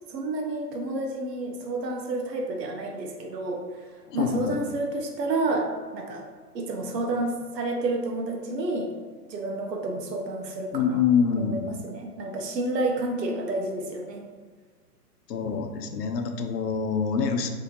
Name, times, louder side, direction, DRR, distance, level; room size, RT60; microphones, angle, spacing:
voice 1, 0.1-3.6 4.1-6.2 6.5-8.9 9.3-10.8 11.4-14.2, right 2 dB, 85° right, 2 dB, 0.7 m, -30 dB
voice 2, 4.1-4.6 10.7-11.7 15.3-17.5, left 6 dB, 75° left, 5 dB, 0.6 m, -26 dB
3.4 x 2.7 x 2.7 m, 1.5 s
hypercardioid pair, 180°, 48 cm